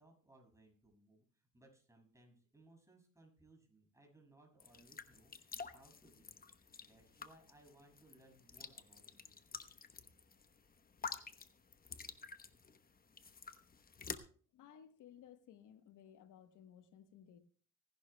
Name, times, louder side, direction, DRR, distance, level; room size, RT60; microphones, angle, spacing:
voice 1, 0.0-5.3 5.7-6.4 6.8-9.7, right 2 dB, 10° right, 0 dB, 6.5 m, -65 dB
sound 1, 4.6-14.2, left 5 dB, 30° left, 1.0 m, -50 dB
voice 2, 14.5-17.4, left 9 dB, 85° left, 10 dB, 1.2 m, -59 dB
24.5 x 11.5 x 2.3 m, 0.43 s
cardioid pair, 90°, 30 cm